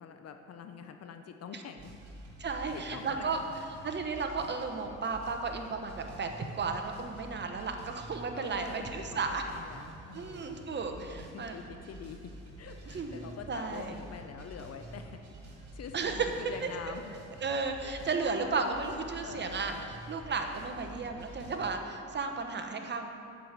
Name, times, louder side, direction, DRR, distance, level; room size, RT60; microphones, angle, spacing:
voice 1, 0.0-1.9 2.4-3.4 8.3-10.5 10.9-12.3 12.6-15.2 15.7-17.0 17.8-18.1 18.3-19.0 19.2-19.8, left 6 dB, 55° left, 6 dB, 0.6 m, -46 dB
sound 1, 1.8-21.7, right 1 dB, 80° right, 1.9 m, -49 dB
voice 2, 2.4-3.4 3.8-9.4 10.1-11.6 12.9-13.9 15.9-16.3 16.6-16.7 17.4-19.7 20.1-23.1, right 4 dB, 35° right, 5 dB, 0.9 m, -34 dB
7.7 x 5.0 x 7.4 m, 2.6 s
cardioid pair, 90°, 30 cm